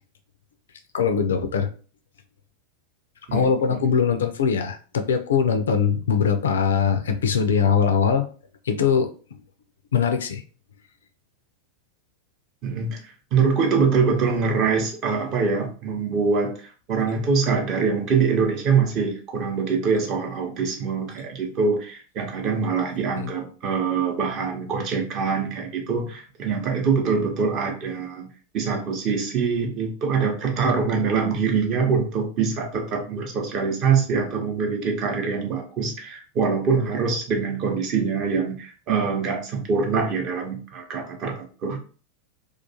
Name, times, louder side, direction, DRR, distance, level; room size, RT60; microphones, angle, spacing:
voice 1, 0.9-1.7 3.3-8.2 8.7-9.1 9.9-10.4 23.2-23.3, left 6 dB, 65° left, 7 dB, 0.3 m, -21 dB
voice 2, 3.3-3.6 12.6-13.0 13.3-28.3 28.5-41.8, right 5 dB, 35° right, 2 dB, 0.7 m, -24 dB
2.3 x 2.3 x 2.7 m, 0.39 s
figure-of-eight pair, 90°, 0 cm